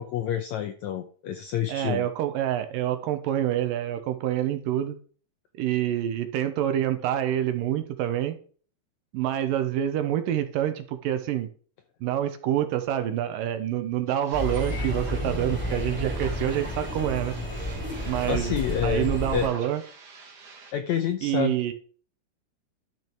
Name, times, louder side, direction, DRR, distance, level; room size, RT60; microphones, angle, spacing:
voice 1, 0.0-2.1 18.0-19.5 20.7-21.7, left 9 dB, 80° left, 7 dB, 1.6 m, -29 dB
voice 2, 1.7-5.0 5.6-8.4 9.1-11.5 12.0-17.3 18.1-18.6 18.8-19.8 21.2-21.7, right 11 dB, 75° right, 9 dB, 2.5 m, -27 dB
sound 1, 14.1-20.7, right 4 dB, 55° right, 1.1 m, -46 dB
sound 2, 14.3-19.5, equal, 5° right, 2.4 m, -31 dB
12.0 x 6.2 x 4.5 m, 0.43 s
omnidirectional pair, 4.2 m